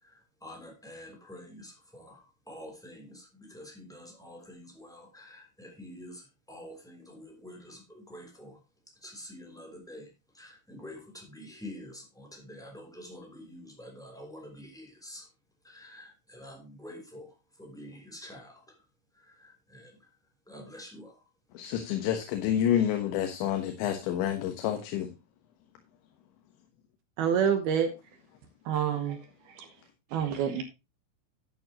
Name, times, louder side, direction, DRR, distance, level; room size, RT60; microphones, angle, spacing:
voice 1, 0.0-8.6 8.9-15.3 15.6-18.8 19.1-20.1 20.5-21.3, left 1 dB, ahead, 2.4 m, -47 dB
voice 2, 21.5-25.1, left 10 dB, 75° left, 3.4 m, -28 dB
voice 3, 27.2-27.9 28.7-29.2 29.5-29.7 30.1-30.6, right 8 dB, 70° right, 2.5 m, -27 dB
12.0 x 9.1 x 2.9 m
omnidirectional pair, 5.5 m